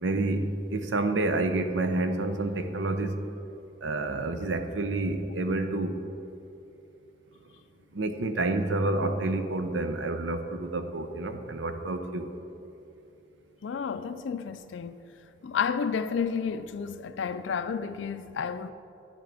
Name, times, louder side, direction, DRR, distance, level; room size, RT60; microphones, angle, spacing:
voice 1, 0.0-3.2 3.8-6.0 7.9-12.3, right 2 dB, 75° right, 0.7 m, -29 dB
voice 2, 13.6-15.0 15.4-18.7, left 6 dB, 75° left, 0.4 m, -31 dB
11.5 x 10.0 x 3.4 m
head